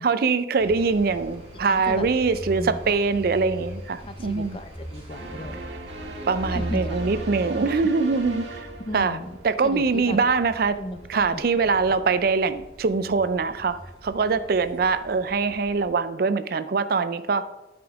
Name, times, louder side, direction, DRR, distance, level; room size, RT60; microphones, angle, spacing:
voice 1, 0.0-4.6 6.3-8.7 8.9-9.2 9.4-10.8 11.1-17.5, right 4 dB, 55° right, 12 dB, 0.4 m, -23 dB
sound 1, 0.6-15.9, equal, 35° right, 2.3 m, -40 dB
voice 2, 1.7-2.1 2.5-3.0 4.0-5.6 6.5-7.1 8.9-9.4 9.6-10.2 10.8-11.4, left 1 dB, 30° left, 9 dB, 0.6 m, -36 dB
sound 2, 5.1-9.6, right 2 dB, 80° right, 1.6 m, -38 dB
12.0 x 5.2 x 3.5 m, 1.0 s
head